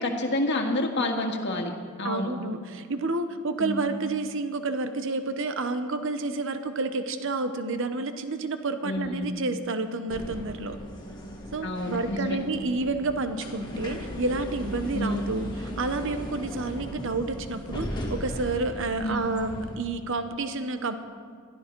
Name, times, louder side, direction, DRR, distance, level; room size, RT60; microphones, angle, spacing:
voice 1, 0.0-1.7 2.0-2.3 3.6-3.9 8.8-9.3 11.6-12.4 14.9-15.2 19.0-19.3, left 1 dB, 50° left, 2 dB, 1.9 m, -28 dB
voice 2, 2.0-10.8 11.5-20.9, right 3 dB, 60° right, 9 dB, 0.9 m, -30 dB
sound 1, 10.1-19.8, equal, 20° left, 2.2 m, -37 dB
22.0 x 13.5 x 4.6 m, 2.1 s
head